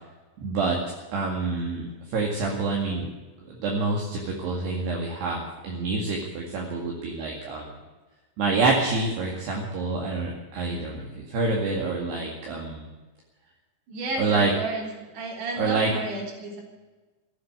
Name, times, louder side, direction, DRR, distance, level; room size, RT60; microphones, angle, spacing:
voice 1, 0.4-0.8 1.1-3.1 3.6-7.7 8.4-12.9 14.2-14.5 15.6-15.9, right 3 dB, 60° right, -1 dB, 3.9 m, -27 dB
voice 2, 13.9-16.6, right 2 dB, 45° right, 0 dB, 4.8 m, -32 dB
16.0 x 9.5 x 9.3 m, 1.2 s
omnidirectional pair, 5.6 m